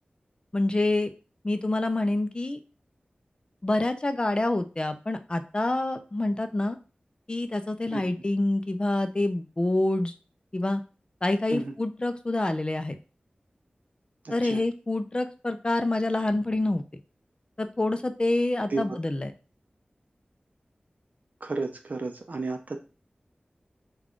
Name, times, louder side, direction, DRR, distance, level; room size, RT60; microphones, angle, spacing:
voice 1, 0.5-1.1 1.4-2.6 3.6-6.8 7.3-10.1 10.5-10.8 11.2-13.0 14.3-16.8 17.6-19.3, left 2 dB, 30° left, 9 dB, 0.4 m, -27 dB
voice 2, 14.2-14.6 18.7-18.8 21.4-22.8, right 3 dB, 60° right, 5 dB, 0.4 m, -32 dB
3.6 x 2.3 x 3.5 m, 0.33 s
wide cardioid pair, 75°, 3 cm